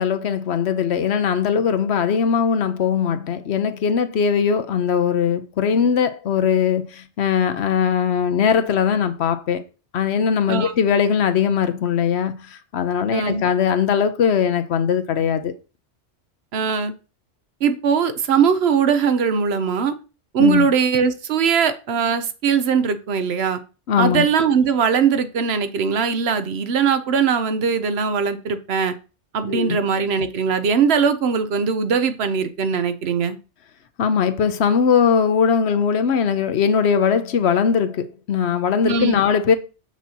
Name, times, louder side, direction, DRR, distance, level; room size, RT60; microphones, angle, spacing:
voice 1, 0.0-9.7 9.9-15.5 20.4-20.7 23.9-24.3 29.4-29.8 34.0-39.5, left 7 dB, 70° left, 0.9 m, -20 dB
voice 2, 13.1-13.4 16.5-16.9 17.6-19.9 20.3-23.6 24.0-28.9 29.3-33.4 38.8-39.2, right 6 dB, 65° right, 0.9 m, -20 dB
7.2 x 6.0 x 2.8 m
omnidirectional pair, 1.2 m